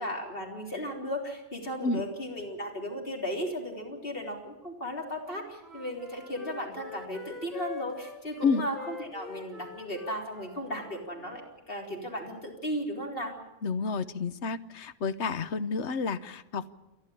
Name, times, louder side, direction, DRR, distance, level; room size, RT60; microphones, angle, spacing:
voice 1, 0.0-11.4 11.7-13.3, equal, 55° left, 1 dB, 4.0 m, -35 dB
Wind instrument woodwind instrument, 5.2-11.6, left 5 dB, ahead, 2.5 m, -45 dB
voice 2, 13.6-16.7, left 4 dB, 80° left, 13 dB, 1.2 m, -30 dB
28.5 x 11.5 x 9.9 m, 1.0 s
omnidirectional pair, 1.2 m